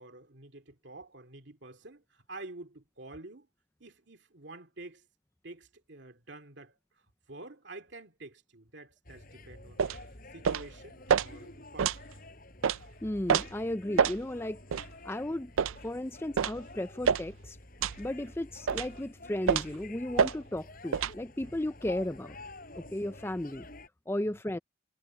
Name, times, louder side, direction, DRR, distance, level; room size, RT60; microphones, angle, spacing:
voice 1, 0.0-3.5 3.8-5.1 5.4-10.0 10.3-12.0 18.2-18.3 21.4-21.6 22.8-23.0 24.2-24.4, right 2 dB, 55° right, 2.7 m, -49 dB
sound 1, 9.0-23.9, left 2 dB, 45° left, 4.7 m, -50 dB
sound 2, 9.8-10.0 10.4-10.7 11.1-11.3 11.8-12.0 12.6-12.8 13.3-13.5 14.0-14.2 14.7-14.9 15.6-15.8 16.4-16.6 17.0-17.3 17.8-18.0 18.7-18.9 19.5-19.8 20.2-20.4 20.9-21.1, right 7 dB, 80° right, 0.4 m, -26 dB
voice 2, 13.0-14.6 15.0-15.5 15.8-17.6 18.0-22.4 22.8-23.7 24.1-24.6, left 1 dB, 10° left, 0.5 m, -34 dB
head